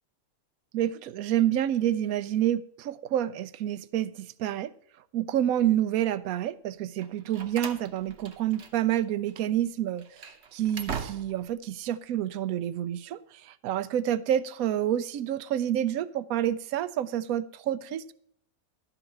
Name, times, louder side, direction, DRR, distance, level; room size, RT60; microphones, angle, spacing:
voice 1, 0.7-4.7 5.1-18.1, right 11 dB, 80° right, 1.0 m, -28 dB
Slam, 7.0-9.0 9.3-9.5 10.0-11.6, right 6 dB, 55° right, 1.1 m, -40 dB
11.5 x 5.5 x 5.5 m
omnidirectional pair, 1.5 m